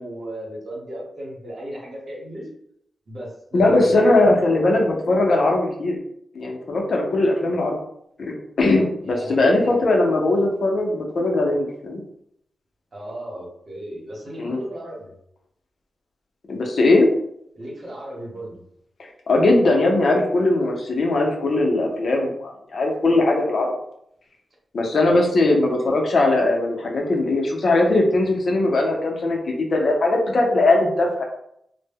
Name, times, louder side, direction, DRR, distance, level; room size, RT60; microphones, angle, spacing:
voice 1, 0.0-2.5 3.1-4.6 8.6-9.8 12.9-15.1 17.6-18.6 25.1-25.4, right 1 dB, 60° right, -3 dB, 0.9 m, -35 dB
voice 2, 3.5-6.0 6.3-7.8 8.2-12.0 14.4-14.6 16.5-17.1 19.0-23.7 24.7-31.2, left 2 dB, 65° left, 1 dB, 0.5 m, -20 dB
2.1 x 2.0 x 3.4 m, 0.74 s
cardioid pair, 55°, 0 cm